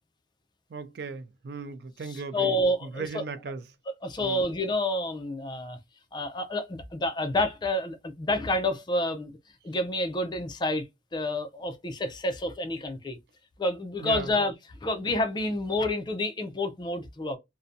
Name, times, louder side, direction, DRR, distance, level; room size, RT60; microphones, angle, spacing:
voice 1, 0.7-2.6 2.8-3.6 4.2-4.4 14.0-14.3, right 4 dB, 60° right, 0.4 m, -37 dB
voice 2, 2.3-3.2 4.0-5.8 6.1-9.4 9.6-10.8 11.1-13.2 13.6-14.5 14.8-17.4, left 1 dB, 25° left, 0.4 m, -29 dB
2.5 x 2.1 x 2.5 m
head